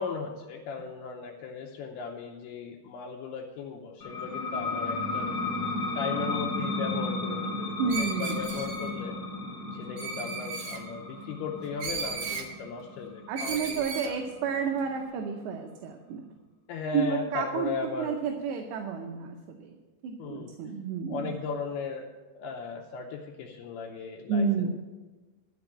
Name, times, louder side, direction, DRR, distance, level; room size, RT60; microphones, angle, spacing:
voice 1, 0.0-5.4 6.0-9.2 9.7-14.2 16.7-18.2 20.2-20.5 21.1-22.1 22.3-24.7, left 5 dB, 80° left, 0 dB, 2.4 m, -37 dB
sound 1, 4.0-15.3, left 2 dB, 35° left, 2.1 m, -34 dB
voice 2, 7.8-8.3 13.3-16.2 16.9-17.7 18.0-19.7 20.0-21.4 24.3-24.7, right 5 dB, 80° right, 3 dB, 2.9 m, -30 dB
Screech, 7.9-8.9 10.0-10.8 11.8-12.5 13.4-14.1, right 5 dB, 60° right, 2.5 m, -35 dB
13.0 x 5.2 x 8.5 m, 1.3 s
omnidirectional pair, 5.1 m